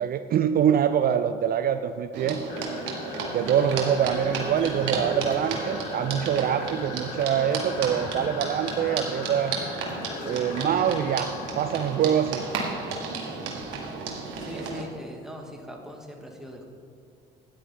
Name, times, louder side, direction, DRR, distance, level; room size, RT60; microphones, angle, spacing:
voice 1, 0.0-2.4 3.3-9.5 10.2-12.4, right 9 dB, 50° right, 10 dB, 0.5 m, -25 dB
sound 1, 2.1-14.8, right 4 dB, 70° right, 1.9 m, -33 dB
sound 2, 2.5-13.8, left 10 dB, 90° left, 0.7 m, -42 dB
voice 2, 10.4-10.7 14.4-16.6, equal, ahead, 1 dB, 2.2 m, -40 dB
12.5 x 9.9 x 4.0 m, 2.3 s
supercardioid pair, 65°, 20 cm